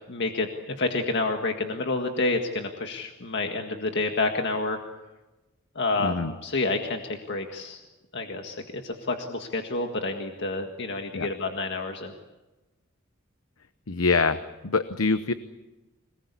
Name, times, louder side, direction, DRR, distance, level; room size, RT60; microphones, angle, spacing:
voice 1, 0.1-4.8 5.8-7.8 8.1-12.1, left 3 dB, 55° left, 4 dB, 1.8 m, -29 dB
voice 2, 6.0-6.4 11.1-11.3 13.9-15.3, left 4 dB, 75° left, 11 dB, 0.9 m, -25 dB
26.0 x 20.0 x 8.5 m, 1.1 s
head